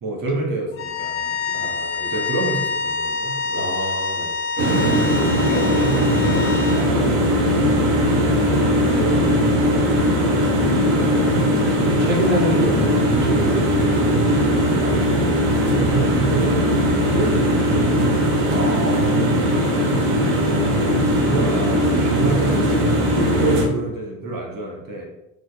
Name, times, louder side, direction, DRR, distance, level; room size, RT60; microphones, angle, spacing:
voice 1, 0.0-1.7 2.1-3.6 4.6-5.1 5.5-9.8 10.2-10.5 11.9-12.0 15.6-16.6 17.1-18.2 19.9-25.0, right 2 dB, 45° right, -1 dB, 2.5 m, -29 dB
sound 1, 0.7-6.9, left 4 dB, 25° left, 1.8 m, -26 dB
voice 2, 1.5-2.2 3.5-4.3 9.7-10.8 11.7-15.1 18.5-19.6 23.3-23.6, right 1 dB, 25° right, -3 dB, 2.4 m, -29 dB
sound 2, 4.6-23.7, equal, 65° right, 2.4 m, -19 dB
6.3 x 4.9 x 5.1 m, 0.88 s
supercardioid pair, 95°, 47 cm